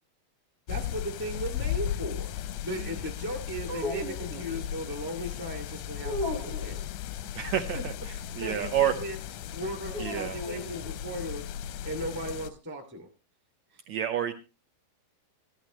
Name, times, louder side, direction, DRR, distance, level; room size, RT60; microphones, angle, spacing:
sound 1, 0.7-12.5, left 11 dB, 80° left, 1.7 m, -36 dB
voice 1, 0.7-2.3 2.6-6.8 7.7-7.8 8.4-9.2 9.5-13.1 13.7-13.8, equal, 5° right, 2 dB, 1.0 m, -37 dB
sound 2, 3.6-4.7 6.0-6.9 9.9-11.0, left 1 dB, 45° right, 2.6 m, -36 dB
voice 2, 7.3-9.0 10.0-10.4 13.9-14.3, right 10 dB, 70° right, 6 dB, 1.8 m, -29 dB
15.0 x 12.0 x 3.1 m, 0.31 s
omnidirectional pair, 4.0 m